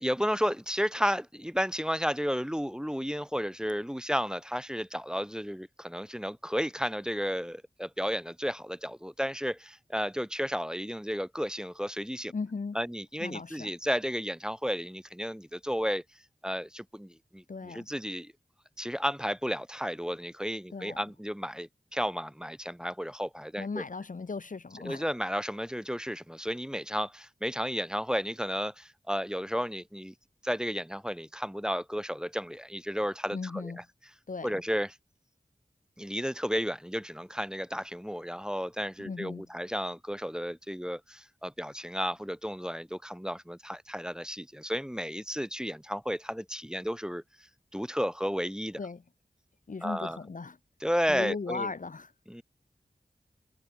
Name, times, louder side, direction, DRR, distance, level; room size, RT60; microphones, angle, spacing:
voice 1, 0.0-12.3 12.7-16.0 16.4-18.3 18.8-23.8 24.8-30.1 30.4-33.8 34.4-35.0 36.0-47.2 47.7-48.8 49.8-50.2 50.8-51.7 52.3-52.4, equal, 5° right, 1.0 m, -33 dB
voice 2, 12.3-12.8 13.2-13.7 17.5-17.9 20.7-21.0 23.6-25.1 33.3-33.8 34.3-34.6 39.0-39.5 48.8-49.0 49.7-50.6 51.1-52.1, left 4 dB, 50° left, 0.8 m, -37 dB
cardioid pair, 45°, 17 cm